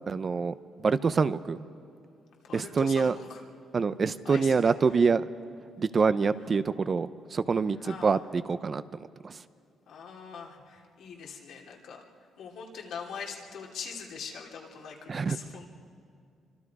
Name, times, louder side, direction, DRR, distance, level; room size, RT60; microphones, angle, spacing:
voice 1, 0.1-0.5 0.8-1.6 2.5-3.2 3.7-5.2 5.8-8.8 9.2-9.4 15.1-15.4, right 5 dB, 40° right, 13 dB, 0.7 m, -26 dB
voice 2, 2.4-3.4 4.2-4.7 7.8-8.2 9.9-12.0 12.4-15.7, left 6 dB, 75° left, -1 dB, 3.0 m, -42 dB
26.5 x 25.0 x 4.9 m, 2.4 s
cardioid pair, 90°, 0 cm